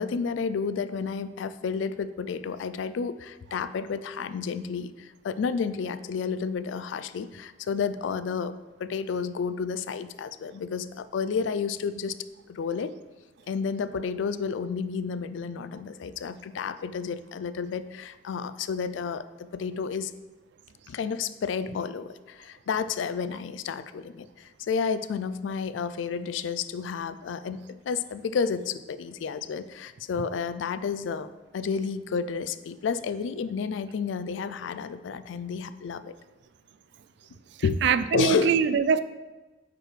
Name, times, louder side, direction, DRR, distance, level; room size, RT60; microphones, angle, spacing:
voice 1, 0.0-8.5 8.8-12.2 12.5-12.9 13.5-20.1 20.9-36.1 37.6-37.8 38.1-38.5, left 6 dB, 85° left, 14 dB, 0.4 m, -31 dB
voice 2, 37.8-39.0, right 6 dB, 65° right, 14 dB, 0.3 m, -22 dB
8.6 x 4.9 x 3.2 m, 1.2 s
head